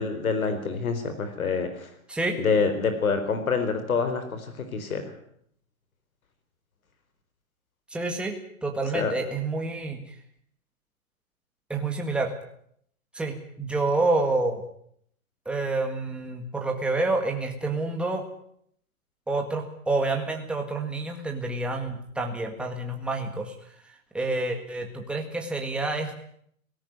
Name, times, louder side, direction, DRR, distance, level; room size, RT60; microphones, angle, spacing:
voice 1, 0.0-1.9 2.4-5.0 8.9-9.1, left 5 dB, 75° left, 8 dB, 4.4 m, -26 dB
voice 2, 7.9-8.4 8.6-10.0 11.7-12.3 13.2-14.6 15.5-18.2 19.3-23.5 24.1-26.1, right 2 dB, ahead, 2 dB, 1.8 m, -28 dB
18.0 x 16.0 x 9.4 m, 0.68 s
hypercardioid pair, 160°, 42 cm